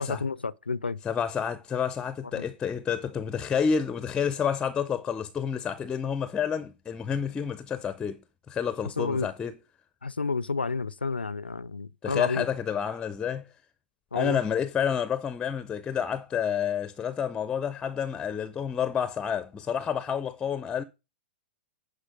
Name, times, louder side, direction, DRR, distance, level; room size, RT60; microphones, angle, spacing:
voice 1, 0.0-1.0 2.3-2.4 9.0-9.3 10.0-12.5 14.1-14.4, left 4 dB, 85° left, 0.4 m, -30 dB
voice 2, 1.0-8.2 8.5-9.5 12.0-13.5 14.1-20.8, left 7 dB, 15° left, 0.5 m, -29 dB
10.5 x 4.9 x 5.0 m
figure-of-eight pair, 100°, 5 cm